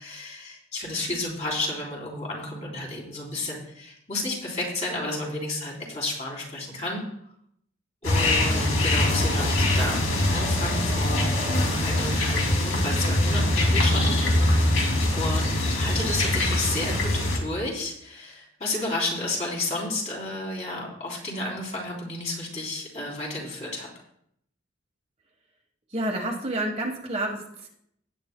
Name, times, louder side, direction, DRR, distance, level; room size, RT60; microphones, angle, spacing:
voice 1, 0.0-7.0 8.0-11.2 11.8-14.1 14.5-23.9, left 2 dB, 35° left, -2 dB, 3.2 m, -32 dB
sound 1, 8.0-17.4, left 1 dB, 85° left, 2.6 m, -23 dB
voice 2, 25.9-27.7, right 1 dB, 30° right, 1 dB, 1.3 m, -29 dB
17.5 x 9.2 x 2.2 m, 0.70 s
head